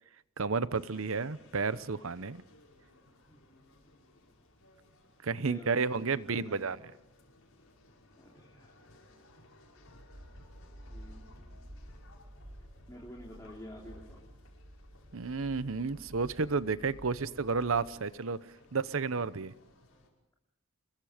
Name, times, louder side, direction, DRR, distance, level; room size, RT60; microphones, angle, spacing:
voice 1, 0.4-2.4 5.2-6.8 15.1-18.4 18.7-19.5, right 4 dB, 75° right, 16 dB, 0.8 m, -31 dB
sound 1, 0.7-20.1, left 2 dB, 80° left, 5.5 m, -61 dB
voice 2, 5.4-6.7 8.2-8.7 10.9-11.9 12.5-14.2, equal, 15° left, -2 dB, 3.2 m, -50 dB
sound 2, 9.7-18.1, equal, 60° right, 5.8 m, -52 dB
28.5 x 22.5 x 5.1 m, 0.86 s
head